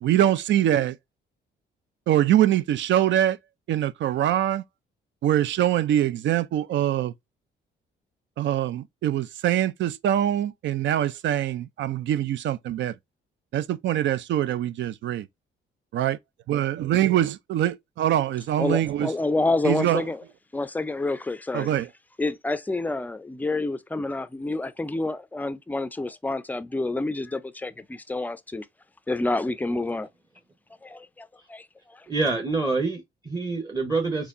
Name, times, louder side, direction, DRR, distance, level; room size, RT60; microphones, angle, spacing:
voice 1, 0.0-1.0 2.1-3.4 3.7-4.6 5.2-7.1 8.4-12.9 13.5-15.3 15.9-16.2 16.5-19.1 19.6-20.0 21.5-21.9, right 12 dB, 70° right, 0.4 m, -23 dB
voice 2, 18.6-20.2 20.5-21.7 22.2-28.7 29.1-30.1 30.8-32.1, left 2 dB, 10° left, 0.4 m, -28 dB
voice 3, 32.1-34.3, right 3 dB, 20° right, 0.9 m, -26 dB
4.2 x 3.0 x 2.5 m
cardioid pair, 90°, 20 cm